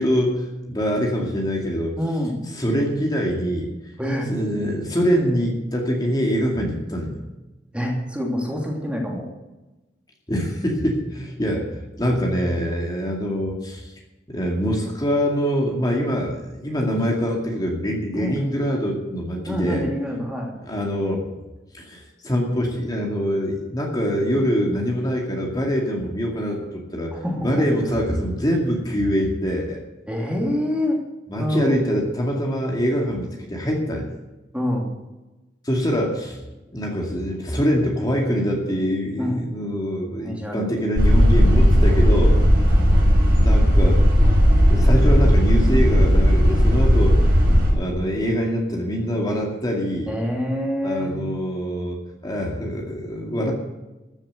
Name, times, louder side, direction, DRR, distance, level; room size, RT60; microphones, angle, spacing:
voice 1, 0.0-2.0 2.6-3.7 4.3-7.2 10.3-13.9 14.3-19.8 20.6-21.3 21.7-27.1 27.4-29.8 31.3-34.1 35.6-36.4 36.7-42.4 43.3-44.0 44.7-47.3 47.7-50.1 50.8-52.0 52.2-53.5, equal, 20° left, -1 dB, 2.4 m, -24 dB
voice 2, 2.0-2.4 4.0-4.4 7.7-9.3 18.1-18.6 19.5-20.5 27.1-27.7 30.1-31.0 31.4-31.8 34.5-34.9 39.2-39.4 40.2-40.7 50.1-51.3, equal, 5° right, -1 dB, 2.8 m, -26 dB
sound 1, 41.0-47.7, equal, 60° right, 6.0 m, -15 dB
14.5 x 7.5 x 8.0 m, 1.0 s
head